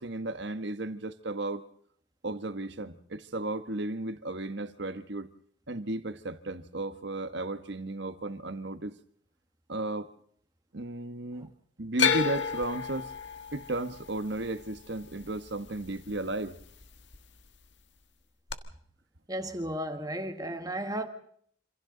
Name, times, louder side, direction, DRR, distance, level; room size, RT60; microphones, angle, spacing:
voice 1, 0.0-1.6 2.2-5.3 5.7-9.0 9.7-10.1 10.7-11.5 11.8-13.1 13.5-16.6, right 2 dB, 60° right, 1.4 m, -34 dB
sound 1, 12.0-16.2 16.5-17.2 18.5-18.6, left 6 dB, 65° left, 1.6 m, -31 dB
voice 2, 19.3-21.1, right 1 dB, 20° right, 1.7 m, -34 dB
28.0 x 26.5 x 4.0 m
head